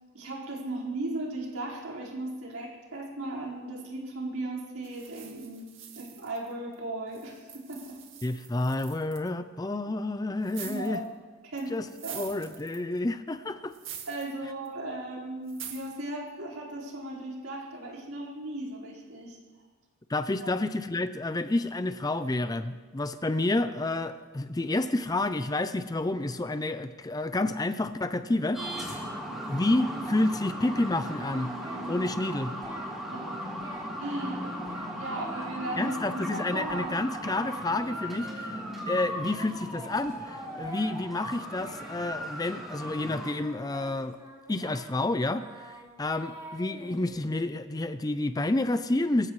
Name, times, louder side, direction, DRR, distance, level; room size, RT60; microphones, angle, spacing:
voice 1, 0.1-5.7 5.9-8.0 10.6-11.1 11.4-11.8 12.0-12.3 14.1-19.4 20.4-20.5 33.1-33.4 34.0-34.6 35.0-37.0, right 2 dB, 80° right, -4 dB, 4.7 m, -36 dB
sound 1, 4.8-6.7 7.1-9.3 10.4-11.1 11.6-13.0 13.7-14.3 14.6-14.7 15.5-16.0, right 9 dB, 60° right, 1.9 m, -45 dB
voice 2, 8.2-11.0 11.7-11.9 12.2-13.7 20.1-29.1 29.5-31.5 31.9-32.5 35.8-44.2 44.5-49.3, left 2 dB, 20° left, 11 dB, 0.5 m, -29 dB
sound 2, 28.5-43.3, equal, ahead, 3.6 m, -37 dB
Singing, 31.1-32.9 33.2-33.9 34.2-34.9 35.2-36.9 37.2-38.7 39.3-42.9 43.2-47.6, right 1 dB, 20° right, 3.4 m, -48 dB
24.0 x 15.5 x 3.2 m, 1.4 s
head